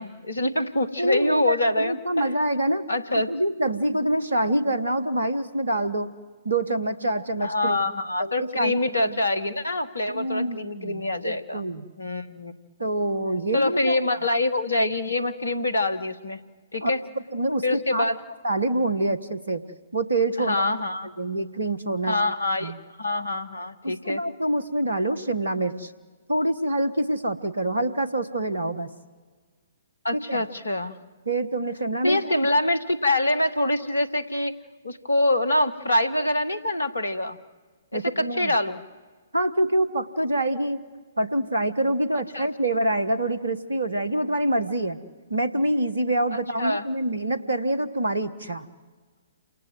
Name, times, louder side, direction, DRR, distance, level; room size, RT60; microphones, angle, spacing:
voice 1, 0.0-2.3 2.9-3.3 7.4-11.7 12.0-12.5 13.5-16.4 16.7-17.0 17.6-18.2 20.5-21.1 22.1-22.7 23.0-24.2 30.0-31.0 32.0-34.5 34.8-37.4 37.9-38.8 42.3-42.5 46.6-46.9, left 1 dB, 70° left, 14 dB, 1.7 m, -25 dB
voice 2, 1.0-2.9 3.3-6.1 6.4-7.8 8.2-8.8 9.1-9.2 10.1-11.8 12.8-14.0 16.8-16.9 17.3-18.1 18.4-19.6 19.9-20.6 21.2-22.2 22.6-22.8 23.8-25.9 26.3-28.9 30.1-30.4 31.3-32.3 37.9-38.5 39.3-40.8 41.2-45.0 45.3-48.7, right 1 dB, 70° right, 14 dB, 1.3 m, -26 dB
28.5 x 26.5 x 7.9 m, 1.5 s
figure-of-eight pair, 125°, 0 cm